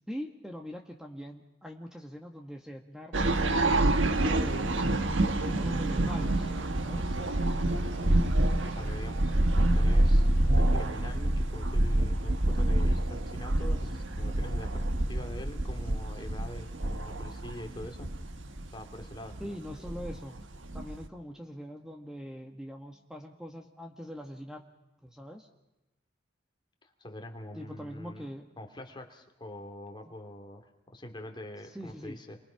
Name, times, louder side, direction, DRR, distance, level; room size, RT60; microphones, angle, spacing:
voice 1, 0.1-4.8 5.4-7.2 19.4-20.4 20.7-24.7 25.0-25.5 27.5-28.5 31.6-32.2, equal, 5° right, 3 dB, 1.6 m, -42 dB
sound 1, 3.1-21.1, right 1 dB, 75° right, 1.4 m, -27 dB
voice 2, 8.6-18.1 18.7-19.6 26.8-28.3 28.6-32.4, left 1 dB, 25° left, 4 dB, 2.6 m, -44 dB
28.5 x 23.5 x 5.8 m, 0.99 s
head